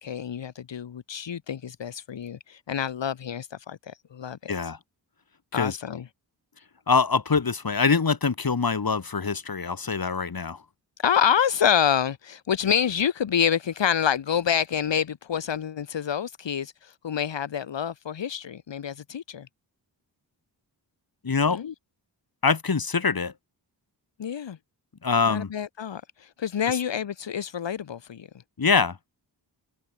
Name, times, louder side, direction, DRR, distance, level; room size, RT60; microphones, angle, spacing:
voice 1, 0.0-4.5 5.5-6.0 11.0-19.5 21.5-21.7 24.2-24.6 25.3-28.3, left 8 dB, 75° left, 1.8 m, -27 dB
voice 2, 4.5-4.8 5.5-5.8 6.9-10.6 21.2-21.6 22.4-23.3 25.0-25.5 26.7-26.8 28.6-29.0, left 5 dB, 50° left, 4.7 m, -24 dB
cardioid pair, 65°, 44 cm